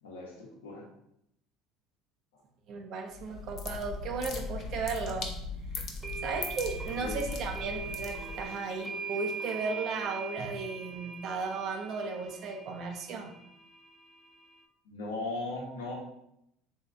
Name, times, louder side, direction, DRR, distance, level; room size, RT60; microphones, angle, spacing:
voice 1, 0.0-0.8 7.0-7.2 8.4-8.5 14.8-15.9, left 2 dB, 80° left, -1 dB, 0.9 m, -38 dB
voice 2, 2.7-5.3 6.2-13.3, right 4 dB, 55° right, 3 dB, 0.7 m, -35 dB
sound 1, 3.1-8.5, left 3 dB, 50° left, 0.7 m, -39 dB
sound 2, 5.8-14.6, right 4 dB, 10° right, 0.9 m, -42 dB
3.2 x 2.7 x 3.5 m, 0.78 s
hypercardioid pair, 70°, 0 cm